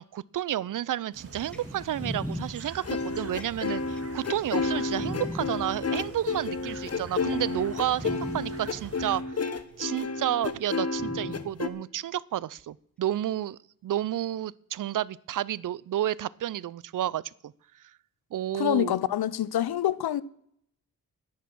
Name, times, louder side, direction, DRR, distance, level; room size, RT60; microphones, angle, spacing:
voice 1, 0.0-9.5 9.8-17.5 18.3-18.9, right 12 dB, 60° right, 0.5 m, -31 dB
sound 1, 1.1-9.2, right 3 dB, 40° right, 2.3 m, -45 dB
sound 2, 1.5-5.5 6.4-7.1 7.5-7.7 8.0-8.5 9.6-9.7 11.0-11.5 12.6-12.7, equal, 5° left, 1.9 m, -38 dB
sound 3, 2.8-11.7, left 4 dB, 40° left, 1.1 m, -31 dB
voice 2, 18.5-20.2, left 12 dB, 80° left, 0.7 m, -26 dB
10.5 x 10.5 x 6.1 m
cardioid pair, 70°, 37 cm